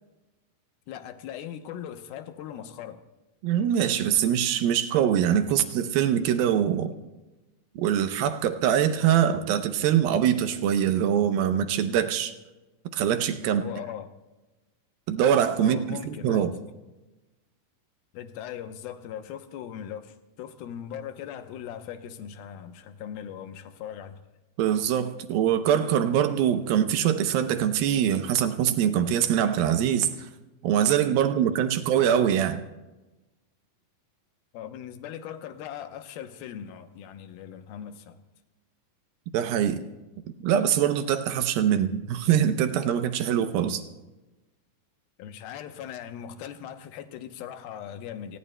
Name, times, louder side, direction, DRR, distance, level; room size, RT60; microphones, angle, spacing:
voice 1, 0.9-3.0 5.5-5.6 13.4-14.1 15.6-16.5 18.1-24.2 34.5-38.2 45.2-48.4, left 9 dB, 75° left, 2.6 m, -39 dB
voice 2, 3.4-6.9 7.8-12.3 12.9-13.6 15.1-16.5 24.6-30.3 30.6-32.6 39.3-39.8 40.4-43.8, right 9 dB, 80° right, 2.5 m, -23 dB
29.0 x 19.5 x 2.2 m
omnidirectional pair, 4.4 m